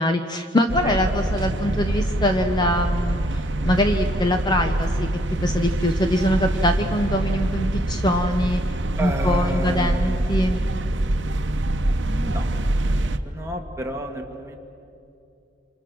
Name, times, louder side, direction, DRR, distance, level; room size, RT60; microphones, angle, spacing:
voice 1, 0.0-5.1 5.4-8.6 9.0-10.6, left 1 dB, 25° left, 6 dB, 0.9 m, -23 dB
sound 1, 0.7-13.2, right 1 dB, 70° right, 0.9 m, -24 dB
voice 2, 0.8-1.2 9.0-11.1 12.0-12.5 12.8-14.6, right 1 dB, 15° right, 1 dB, 1.8 m, -33 dB
27.0 x 27.0 x 6.2 m, 2.8 s
head